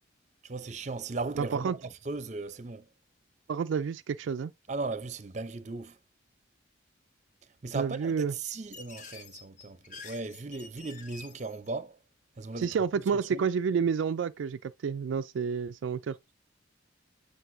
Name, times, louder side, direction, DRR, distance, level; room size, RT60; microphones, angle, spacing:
voice 1, 0.4-2.9 4.7-6.0 7.6-12.0 12.4-12.8 13.1-13.5, right 3 dB, 35° right, 0.6 m, -37 dB
voice 2, 1.4-1.7 3.5-4.5 7.7-8.3 12.6-16.2, right 6 dB, 75° right, 0.3 m, -29 dB
sound 1, 8.4-11.7, left 4 dB, 40° left, 0.9 m, -48 dB
7.9 x 5.2 x 2.6 m
head